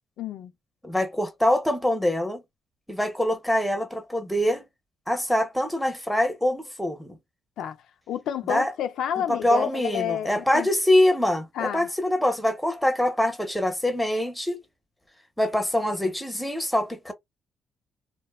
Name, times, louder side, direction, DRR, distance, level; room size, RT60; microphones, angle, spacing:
voice 1, 0.2-0.5 7.6-7.8 8.1-10.7 11.5-11.9, left 10 dB, 80° left, 0.4 m, -30 dB
voice 2, 0.8-2.4 2.9-4.6 5.1-7.2 8.5-8.7 9.3-14.6 15.4-17.1, left 1 dB, 5° left, 0.7 m, -24 dB
2.6 x 2.1 x 2.3 m
cardioid pair, 90°, 0 cm